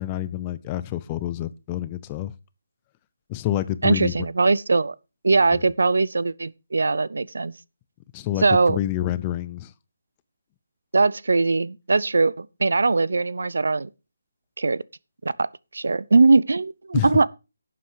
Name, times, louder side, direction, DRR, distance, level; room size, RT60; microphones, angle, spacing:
voice 1, 0.0-2.3 3.3-4.3 5.5-5.6 8.1-9.7 16.9-17.1, left 13 dB, 20° left, 0.5 m, -28 dB
voice 2, 3.8-4.9 5.2-7.5 8.4-8.8 10.9-13.9 14.6-14.8 15.2-15.5 15.7-17.3, right 3 dB, 75° right, 0.6 m, -20 dB
11.5 x 7.6 x 4.8 m
hypercardioid pair, 165°, 0 cm